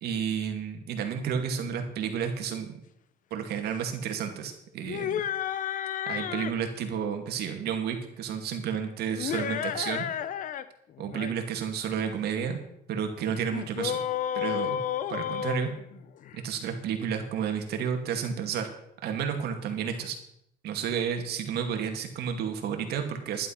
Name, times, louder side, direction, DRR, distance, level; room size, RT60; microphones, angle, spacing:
voice 1, 0.0-2.8 3.3-5.2 6.1-10.1 11.0-12.6 12.9-14.0 14.3-14.8 15.1-15.7 16.3-18.7 19.0-20.2 20.6-23.5, right 7 dB, 70° right, 5 dB, 2.3 m, -31 dB
sound 1, 4.8-6.6 9.1-10.7 11.0-11.3 13.5-16.4, left 10 dB, 50° left, 0.7 m, -32 dB
11.5 x 11.0 x 5.8 m, 0.77 s
cardioid pair, 110°, 17 cm